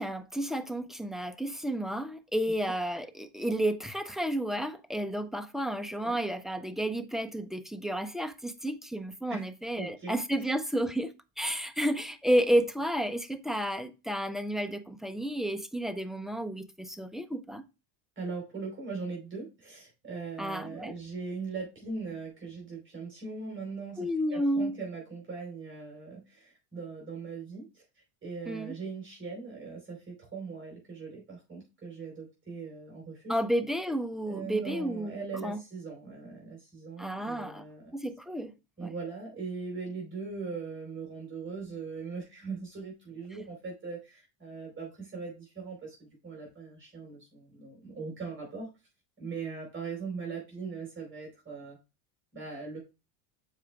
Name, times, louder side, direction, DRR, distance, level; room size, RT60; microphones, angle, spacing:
voice 1, 0.0-11.1 11.4-17.6 20.4-20.9 24.0-24.7 28.5-28.7 33.3-35.6 37.0-37.6 37.9-38.5 38.8-38.9, right 1 dB, ahead, 0.5 m, -31 dB
voice 2, 9.8-10.2 18.2-27.8 28.2-33.4 34.3-37.9 38.8-48.7 49.2-51.8 52.3-52.8, right 4 dB, 25° right, 4.3 m, -40 dB
7.3 x 4.9 x 3.3 m
supercardioid pair, 110°, 47 cm